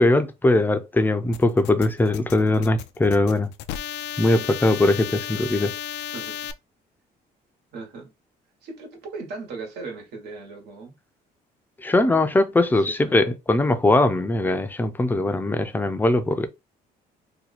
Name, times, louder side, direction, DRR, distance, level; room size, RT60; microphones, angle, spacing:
voice 1, 0.0-3.5 4.2-5.7 11.8-16.5, left 2 dB, 10° left, 0.5 m, -20 dB
sound 1, 1.3-6.5, left 10 dB, 85° left, 0.4 m, -34 dB
voice 2, 7.7-8.1 8.6-10.9 12.7-13.1, right 3 dB, 75° right, 1.4 m, -38 dB
2.8 x 2.2 x 4.1 m
cardioid pair, 110°, 17 cm